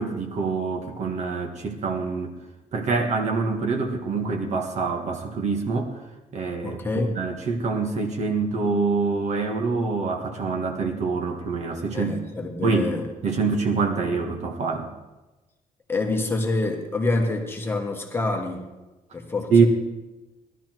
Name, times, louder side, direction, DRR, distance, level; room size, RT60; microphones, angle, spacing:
voice 1, 0.0-2.3 2.7-6.0 6.3-12.1 12.6-12.9 13.2-14.9 19.5-19.7, right 4 dB, 50° right, 3 dB, 1.7 m, -25 dB
voice 2, 6.6-7.2 11.9-13.0 15.9-18.7 19.1-19.5, left 2 dB, 15° left, 2 dB, 1.4 m, -26 dB
17.5 x 12.0 x 4.6 m, 1.1 s
cardioid pair, 175°, 15 cm